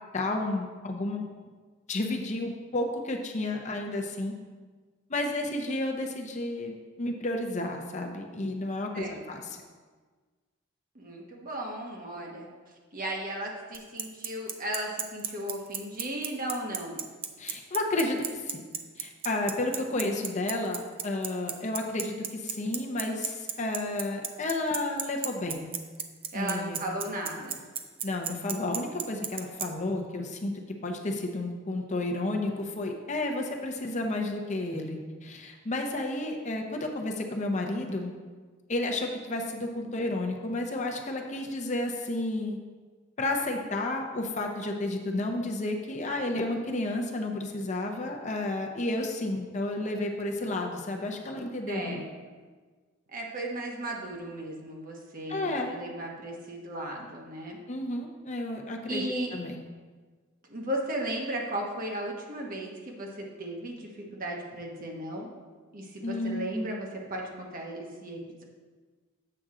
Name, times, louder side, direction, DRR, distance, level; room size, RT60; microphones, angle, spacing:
voice 1, 0.1-1.2 1.9-4.3 5.1-9.6 17.4-18.6 19.0-25.7 26.3-26.8 28.0-30.5 30.8-38.1 38.7-42.6 43.2-52.0 55.3-55.7 57.7-59.0 59.3-59.6 66.0-66.7, left 2 dB, 35° left, 2 dB, 0.7 m, -31 dB
voice 2, 8.9-9.3 10.9-12.5 12.9-17.0 26.3-27.6 51.7-52.0 53.1-57.6 58.9-59.3 60.5-65.3 65.7-68.4, right 1 dB, 45° right, 0 dB, 1.1 m, -36 dB
Bicycle, 13.7-29.7, right 8 dB, 25° right, 0.4 m, -32 dB
7.7 x 6.0 x 3.7 m, 1.4 s
head